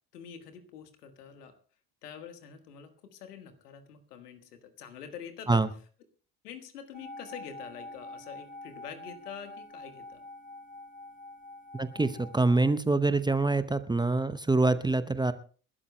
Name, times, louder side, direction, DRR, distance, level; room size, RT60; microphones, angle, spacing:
voice 1, 0.1-1.5 2.0-5.6 6.4-10.2, left 8 dB, 75° left, 8 dB, 1.6 m, -46 dB
sound 1, 6.9-12.7, left 2 dB, 15° left, 4.7 m, -46 dB
voice 2, 11.7-15.3, right 3 dB, 10° right, 12 dB, 0.7 m, -25 dB
29.0 x 12.5 x 2.2 m, 0.41 s
figure-of-eight pair, 55°, 46 cm